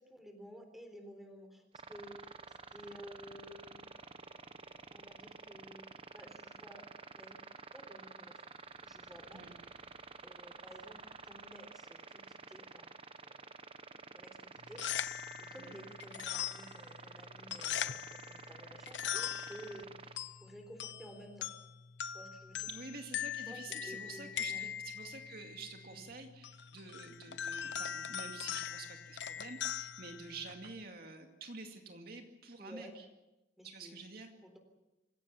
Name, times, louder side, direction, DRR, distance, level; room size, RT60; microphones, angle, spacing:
voice 1, 0.0-3.9 4.9-6.9 7.1-7.5 7.7-8.6 8.8-9.5 10.2-13.0 13.2-13.5 13.9-14.8 15.4-21.5 22.1-22.7 23.5-24.6 25.9-26.0 32.6-33.0 33.6-34.0 34.4-34.6, equal, ahead, 4 dB, 3.9 m, -53 dB
sound 1, 1.7-20.2, right 4 dB, 30° right, 1.1 m, -51 dB
sound 2, 14.6-30.8, left 9 dB, 70° left, 0.8 m, -41 dB
voice 2, 22.7-33.0 33.6-34.3, right 3 dB, 55° right, 3 dB, 2.3 m, -49 dB
26.0 x 17.0 x 7.2 m, 0.98 s
head